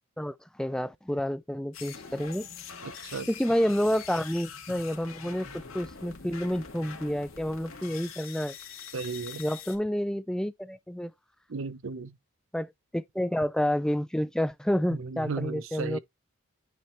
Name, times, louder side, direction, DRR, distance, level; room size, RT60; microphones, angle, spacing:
voice 1, 0.2-2.5 3.4-8.5 9.4-11.1 12.5-16.0, equal, 5° left, 0.4 m, -29 dB
sound 1, 1.7-9.8, left 6 dB, 70° left, 2.1 m, -44 dB
voice 2, 2.8-3.3 8.9-9.4 11.5-12.2 14.9-16.0, right 4 dB, 65° right, 0.6 m, -35 dB
9.3 x 3.2 x 4.3 m
head